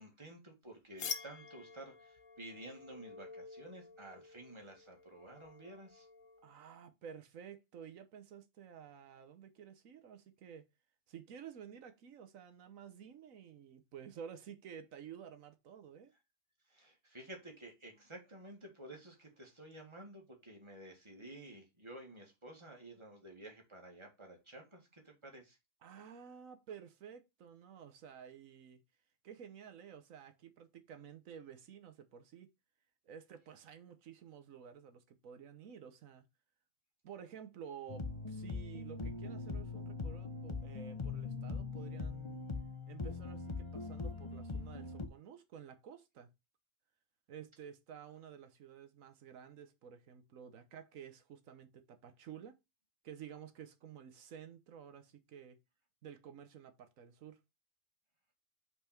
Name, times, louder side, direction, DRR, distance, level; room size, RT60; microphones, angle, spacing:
voice 1, 0.0-6.1 16.7-25.6, right 1 dB, 20° right, 2.2 m, -52 dB
sound 1, 1.0-6.5, left 7 dB, 75° left, 1.3 m, -48 dB
voice 2, 6.4-10.7 11.1-16.1 25.8-28.8 29.2-32.5 33.0-36.2 37.0-42.5 42.9-46.3 47.3-52.6 53.0-55.6 56.0-57.4, right 8 dB, 90° right, 1.3 m, -52 dB
sound 2, 37.9-45.1, left 4 dB, 30° left, 0.7 m, -41 dB
5.5 x 4.7 x 4.4 m
omnidirectional pair, 1.3 m